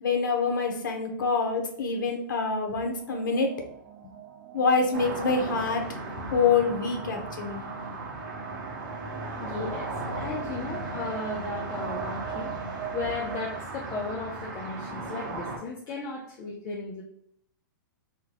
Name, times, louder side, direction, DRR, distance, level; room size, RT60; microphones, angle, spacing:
voice 1, 0.0-3.5 4.5-5.9 6.3-7.6, left 4 dB, 70° left, 3 dB, 0.9 m, -26 dB
sound 1, 2.7-13.6, right 10 dB, 25° right, 0.5 m, -42 dB
sound 2, 4.9-15.6, right 2 dB, 70° right, 1.2 m, -36 dB
voice 2, 9.4-17.0, left 3 dB, 30° left, -2 dB, 0.6 m, -36 dB
3.5 x 2.3 x 2.9 m, 0.68 s
hypercardioid pair, 130°, 11 cm